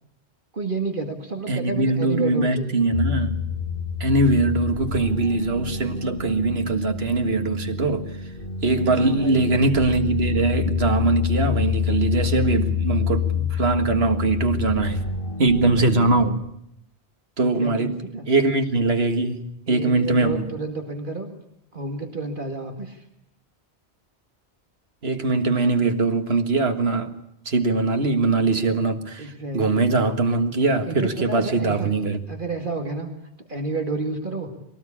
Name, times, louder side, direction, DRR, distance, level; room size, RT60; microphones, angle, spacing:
voice 1, 0.5-2.8 8.9-9.5 17.4-18.3 19.7-21.3 21.7-23.0 28.3-28.7 29.2-30.0 30.8-31.9 32.3-33.1 33.5-34.5, right 3 dB, 50° right, 4 dB, 2.3 m, -31 dB
voice 2, 1.5-3.4 4.0-8.1 8.6-15.0 15.4-16.4 17.4-18.0 18.3-20.5 25.0-27.1 27.5-32.2, right 3 dB, 70° right, 7 dB, 2.0 m, -22 dB
sound 1, 2.9-16.3, left 6 dB, 55° left, 2.0 m, -27 dB
22.0 x 18.5 x 8.6 m, 0.78 s
omnidirectional pair, 1.1 m